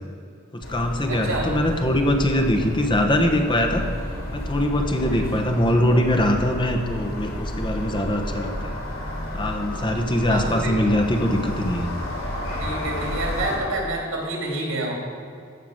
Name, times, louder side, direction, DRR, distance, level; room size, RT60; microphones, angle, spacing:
voice 1, 0.5-3.8 4.3-8.7 9.3-11.9, left 1 dB, 25° left, 4 dB, 1.1 m, -22 dB
sound 1, 0.6-13.6, left 1 dB, 90° left, 3.7 m, -31 dB
voice 2, 1.1-1.5 5.1-5.3 10.3-10.7 12.5-14.9, right 2 dB, 85° right, -1 dB, 3.4 m, -28 dB
14.5 x 5.8 x 7.9 m, 2.4 s
head